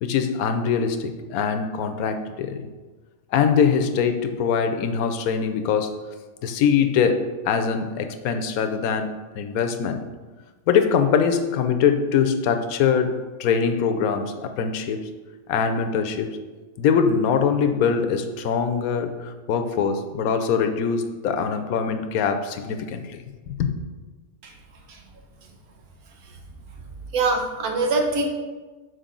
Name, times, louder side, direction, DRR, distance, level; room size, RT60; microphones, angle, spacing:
voice 1, 0.0-2.7 3.3-5.9 6.4-10.0 10.7-15.1 15.5-16.4 16.8-23.2 23.5-23.7, left 6 dB, 85° left, 7 dB, 1.1 m, -23 dB
voice 2, 27.1-28.3, right 3 dB, 85° right, 2 dB, 1.4 m, -23 dB
6.6 x 4.7 x 3.8 m, 1.3 s
omnidirectional pair, 1.5 m